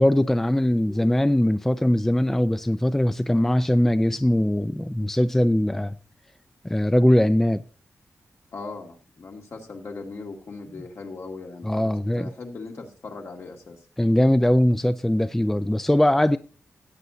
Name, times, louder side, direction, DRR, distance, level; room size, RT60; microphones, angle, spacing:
voice 1, 0.0-5.9 6.6-7.6 11.6-12.3 14.0-16.4, left 1 dB, 5° left, 0.4 m, -21 dB
voice 2, 8.5-13.8, left 3 dB, 65° left, 2.3 m, -39 dB
17.0 x 8.3 x 2.7 m
wide cardioid pair, 100°, 5 cm